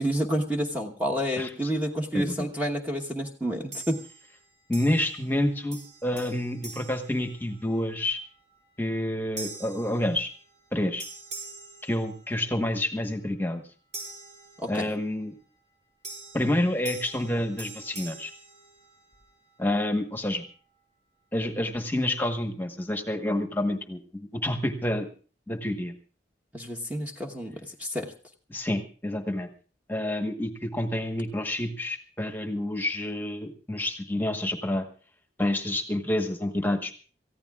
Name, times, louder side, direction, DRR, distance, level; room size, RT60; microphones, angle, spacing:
voice 1, 0.0-4.0 14.6-14.9 26.5-28.1, equal, 10° right, 1 dB, 1.1 m, -29 dB
voice 2, 2.1-2.5 4.7-8.2 8.8-10.3 10.7-11.0 11.8-13.6 14.7-15.3 16.3-18.3 19.6-20.4 21.3-25.1 25.5-25.9 28.5-29.5 29.9-34.9 35.4-36.9, left 1 dB, 10° left, 6 dB, 1.2 m, -28 dB
sound 1, 3.7-4.4 4.7-5.4 5.7-7.9 8.4-8.7 9.4-10.7 11.0-12.6 13.9-15.1 16.0-19.3, right 3 dB, 40° right, 5.8 m, -44 dB
28.0 x 15.0 x 2.4 m, 0.38 s
head